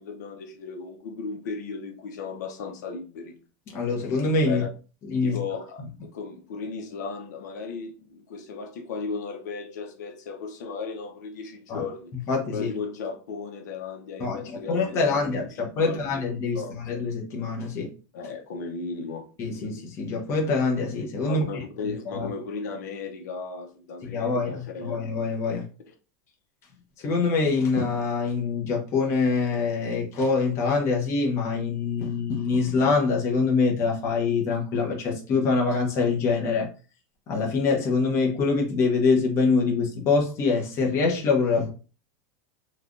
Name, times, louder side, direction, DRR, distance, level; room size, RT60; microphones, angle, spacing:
voice 1, 0.0-3.4 4.5-4.6 5.2-12.1 12.5-15.4 15.8-16.2 16.5-16.8 18.1-19.3 21.2-25.0, left 5 dB, 85° left, 0.7 m, -35 dB
voice 2, 3.7-4.6 5.1-5.4 11.7-11.8 12.3-12.7 14.2-17.9 19.4-21.5 21.8-22.3 24.0-25.6 27.0-36.7 37.3-41.7, left 4 dB, 30° left, 0.8 m, -25 dB
3.2 x 2.3 x 2.5 m
supercardioid pair, 155°, 9 cm